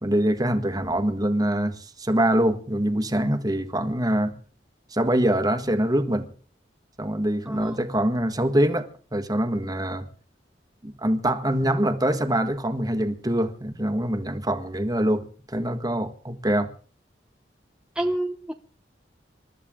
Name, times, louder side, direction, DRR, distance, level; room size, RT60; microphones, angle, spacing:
voice 1, 0.0-4.4 4.9-6.3 7.0-10.1 10.8-16.7, right 1 dB, 20° right, 1.6 m, -24 dB
voice 2, 7.5-7.8 18.0-18.5, right 1 dB, 5° right, 0.8 m, -28 dB
28.0 x 13.0 x 3.7 m
head